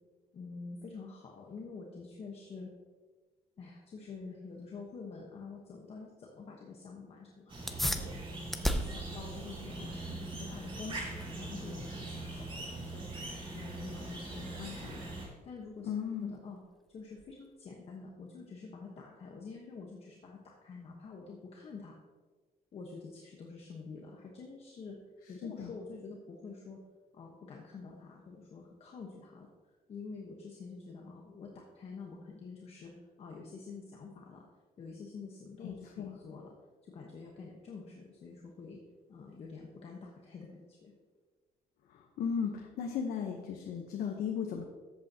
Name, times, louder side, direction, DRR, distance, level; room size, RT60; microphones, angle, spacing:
voice 1, 0.3-2.7 3.6-7.5 8.0-8.2 8.7-13.0 13.5-15.0 15.4-15.9 16.2-16.6 16.9-18.9 19.2-21.9 22.7-25.0 25.3-26.8 27.2-29.5 29.9-31.5 31.8-32.9 33.2-34.4 34.8-36.5 36.9-38.8 39.1-40.5 40.8-40.9, left 4 dB, 40° left, -1 dB, 1.2 m, -47 dB
sound 1, 7.5-15.3, right 2 dB, 35° right, 2.8 m, -42 dB
sound 2, 7.7-17.6, equal, ahead, 0.5 m, -40 dB
voice 2, 15.8-16.3 25.2-25.7 35.6-36.2 41.9-44.6, left 7 dB, 85° left, 2 dB, 1.0 m, -36 dB
14.0 x 8.2 x 2.9 m, 1.4 s
cardioid pair, 160°, 15 cm